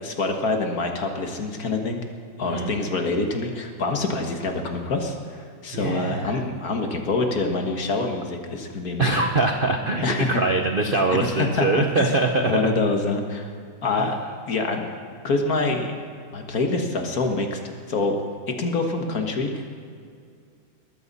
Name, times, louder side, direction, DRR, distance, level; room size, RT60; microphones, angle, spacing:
voice 1, 0.0-2.0 2.4-5.1 5.6-9.2 10.0-10.4 11.4-11.7 12.0-12.1 12.5-13.5 13.8-14.2 14.5-14.8 15.2-16.0 16.3-17.6 17.9-18.2 18.6-19.7, left 3 dB, 50° left, 3 dB, 1.8 m, -25 dB
voice 2, 2.4-2.8 5.7-6.4 9.0-12.8 14.0-14.1, right 2 dB, 45° right, 4 dB, 0.7 m, -23 dB
20.5 x 14.5 x 4.1 m, 2.2 s
omnidirectional pair, 2.1 m